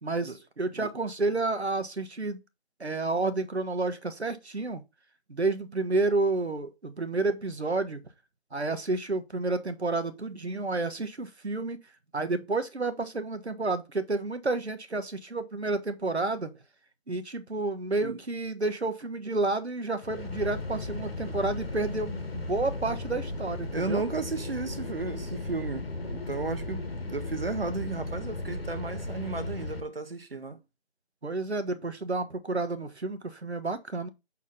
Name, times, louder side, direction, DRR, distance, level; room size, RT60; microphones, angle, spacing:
voice 1, 0.0-2.4 2.8-4.8 5.3-8.0 8.5-11.8 12.1-16.5 17.1-24.0 31.2-34.1, right 3 dB, 80° right, 1.3 m, -30 dB
sound 1, 20.0-29.8, left 2 dB, 65° left, 1.9 m, -36 dB
voice 2, 23.7-30.6, right 3 dB, 60° right, 1.3 m, -34 dB
7.2 x 4.4 x 4.0 m
figure-of-eight pair, 160°, 33 cm